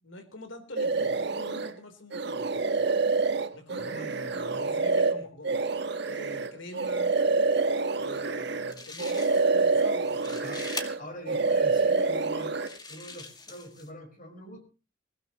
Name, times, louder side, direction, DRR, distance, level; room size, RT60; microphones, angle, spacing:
voice 1, 0.0-2.6 3.5-5.6 6.0-7.2 8.0-10.4, left 1 dB, 80° left, 7 dB, 3.6 m, -45 dB
sound 1, 0.8-1.7 2.1-8.7 9.0-11.0 11.3-12.7, right 3 dB, 60° right, 1.5 m, -27 dB
voice 2, 3.8-5.2 10.4-10.6 11.0-12.6 12.9-14.7, equal, 45° left, 6 dB, 4.9 m, -44 dB
sound 2, 8.4-8.5 8.7-9.6 10.0-10.9 11.6-11.7 12.4-13.9, left 3 dB, 20° left, 2.0 m, -42 dB
22.5 x 16.5 x 3.0 m, 0.33 s
head